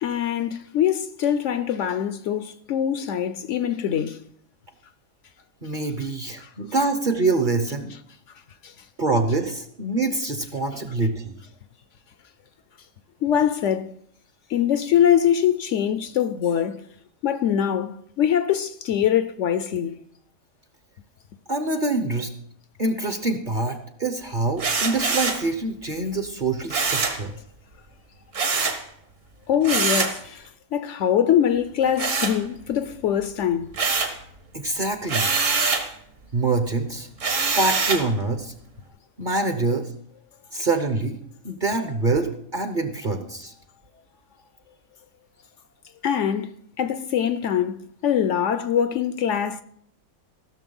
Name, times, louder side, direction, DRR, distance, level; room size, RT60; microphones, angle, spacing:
voice 1, 0.0-4.2 6.4-6.5 8.6-8.7 13.2-13.9 14.5-16.8 17.2-19.9 29.5-33.7 46.0-47.8 48.0-49.6, left 9 dB, 65° left, 0.8 m, -23 dB
voice 2, 5.6-7.9 9.0-11.3 21.5-22.3 22.8-27.3 34.5-35.3 36.3-37.1 37.5-38.5 39.2-39.9 40.5-41.2 41.4-43.5, right 3 dB, 40° right, 0.9 m, -25 dB
sound 1, 24.6-25.5 26.7-27.2 28.3-28.8 29.6-30.2 32.0-32.8 33.2-34.2 35.1-35.9 37.2-38.1, right 4 dB, 60° right, 1.8 m, -24 dB
15.5 x 6.6 x 5.4 m
omnidirectional pair, 1.5 m